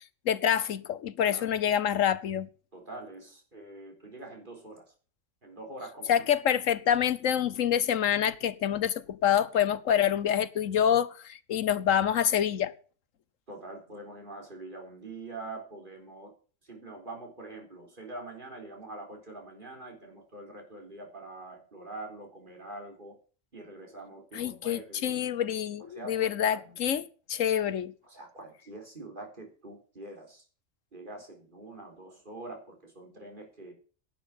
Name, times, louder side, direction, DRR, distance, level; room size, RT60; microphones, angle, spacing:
voice 1, 0.3-2.5 6.1-12.7 24.3-27.0 27.3-27.9, left 9 dB, 85° left, 1.3 m, -26 dB
voice 2, 1.3-1.6 2.7-4.9 5.4-6.2 13.5-16.3 16.6-23.2 23.5-25.2 25.8-26.8 28.0-30.5 30.9-33.7, right 2 dB, 40° right, 4.2 m, -44 dB
11.0 x 9.1 x 7.6 m
omnidirectional pair, 1.3 m